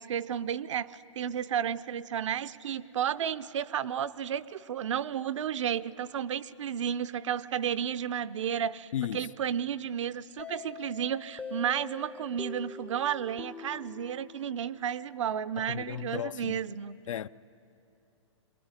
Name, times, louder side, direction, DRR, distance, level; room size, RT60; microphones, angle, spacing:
voice 1, 0.0-17.0, right 9 dB, 70° right, 0.7 m, -32 dB
voice 2, 8.9-9.3 15.6-16.6 17.1-17.3, left 10 dB, 80° left, 0.5 m, -35 dB
sound 1, 10.4-15.1, left 5 dB, 10° left, 0.5 m, -44 dB
23.5 x 20.5 x 9.7 m
hypercardioid pair, 150°, 16 cm